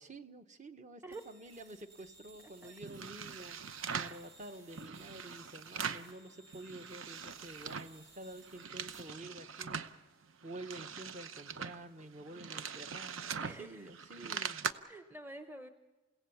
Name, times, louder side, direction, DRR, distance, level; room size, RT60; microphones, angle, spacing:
voice 1, 0.0-9.8 10.4-14.7, right 1 dB, 40° right, 8 dB, 1.1 m, -49 dB
sound 1, 1.1-9.0, right 2 dB, 65° right, 6.5 m, -60 dB
voice 2, 2.4-2.8 13.4-13.9 14.9-15.7, right 2 dB, 10° right, 8 dB, 0.8 m, -48 dB
sound 2, 2.8-4.2 4.7-6.1 6.5-8.0 8.3-9.9 10.4-14.7, right 6 dB, 85° right, 0.9 m, -42 dB
29.5 x 17.0 x 7.1 m, 1.3 s
head